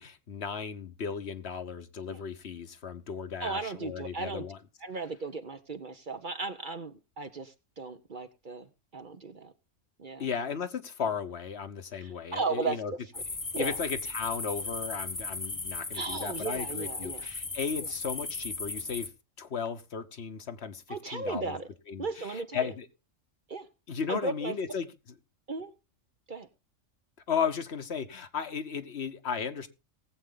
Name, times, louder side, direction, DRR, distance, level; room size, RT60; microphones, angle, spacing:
voice 1, 0.0-4.6 10.2-12.9 13.6-19.1 19.4-21.6 21.9-22.9 23.9-24.9 27.3-29.7, left 6 dB, 60° left, 1.2 m, -35 dB
voice 2, 3.4-4.5 4.8-8.7 8.9-9.5 10.0-10.3 12.0-13.2 13.5-13.8 15.9-17.3 20.9-21.7 22.0-22.7 23.5-23.7 24.1-24.6 25.5-25.7 26.3-26.5, right 3 dB, 45° right, 1.0 m, -36 dB
sound 1, 13.1-19.1, left 3 dB, 20° left, 0.6 m, -37 dB
19.0 x 7.9 x 3.8 m
omnidirectional pair, 1.3 m